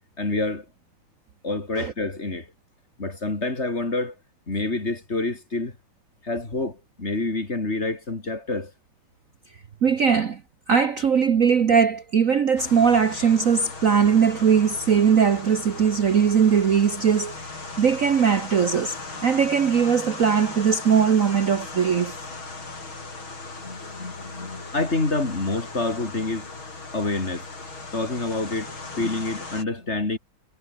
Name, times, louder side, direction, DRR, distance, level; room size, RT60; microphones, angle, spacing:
voice 1, 0.2-0.7 1.4-2.5 3.0-4.2 4.5-5.8 6.2-8.7 23.6-26.5 26.9-27.5 27.9-30.2, left 2 dB, 30° left, 3.6 m, -27 dB
voice 2, 9.8-10.4 10.7-19.0 19.2-22.2, right 7 dB, 45° right, 1.3 m, -20 dB
sound 1, 12.6-29.6, left 3 dB, 75° left, 6.2 m, -38 dB
omnidirectional pair, 2.2 m